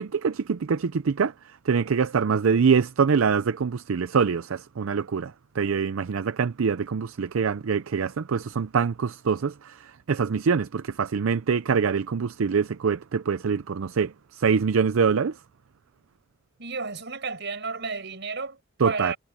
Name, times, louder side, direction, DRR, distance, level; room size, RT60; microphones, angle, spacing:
voice 1, 0.0-15.4 18.8-19.1, right 6 dB, 75° right, 0.5 m, -24 dB
voice 2, 16.6-19.2, right 4 dB, 60° right, 6.5 m, -32 dB
head